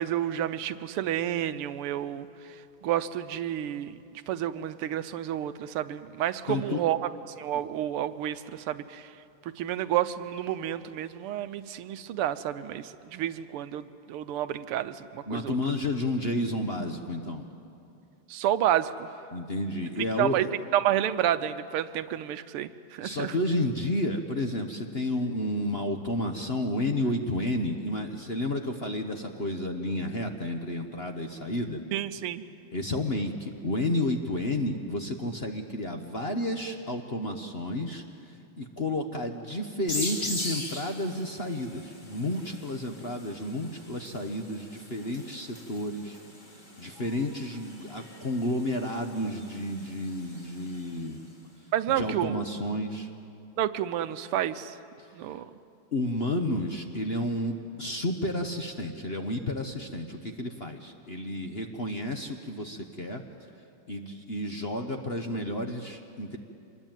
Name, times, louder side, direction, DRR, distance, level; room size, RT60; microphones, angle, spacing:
voice 1, 0.0-2.6 2.8-4.0 4.3-7.0 7.4-9.1 9.6-15.6 18.3-19.1 20.2-20.5 20.7-23.3 31.9-32.4 51.7-52.4 53.6-54.8 55.1-55.5, right 11 dB, 85° right, 12 dB, 1.7 m, -30 dB
voice 2, 6.5-6.8 15.3-17.5 19.3-20.5 23.0-31.8 32.7-46.2 46.8-51.3 51.9-53.1 55.0-55.1 55.9-63.2 63.9-66.4, left 1 dB, 40° left, 4 dB, 1.0 m, -31 dB
sound 1, 39.9-51.2, left 1 dB, 20° left, 2.6 m, -41 dB
25.0 x 21.0 x 9.1 m, 2.6 s
omnidirectional pair, 2.4 m